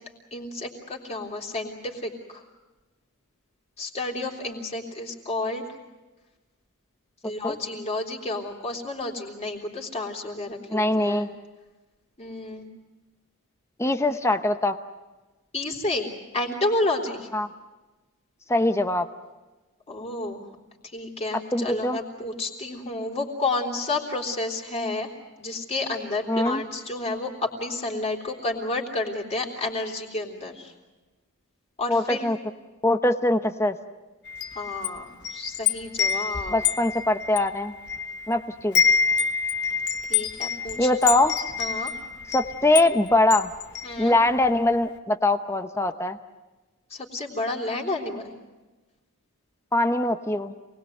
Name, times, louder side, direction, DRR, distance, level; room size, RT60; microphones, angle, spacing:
voice 1, 0.3-2.4 3.8-5.7 7.2-11.3 12.2-12.7 15.5-17.3 19.9-20.5 20.9-25.1 25.4-30.7 31.8-32.3 34.5-36.6 40.1-40.9 41.6-41.9 43.8-44.2 46.9-48.3, left 2 dB, 30° left, 1 dB, 3.6 m, -30 dB
voice 2, 10.7-11.3 13.8-14.8 17.3-17.5 18.5-19.1 21.5-22.0 26.3-26.6 31.9-32.4 32.8-33.8 36.5-37.7 38.3-38.8 40.8-41.3 42.3-43.5 44.0-46.2 49.7-50.5, left 2 dB, 10° left, 8 dB, 0.9 m, -22 dB
Wind chime, 34.3-38.3 38.6-44.5, left 6 dB, 50° left, 1.2 m, -27 dB
28.0 x 20.5 x 7.9 m, 1.2 s
head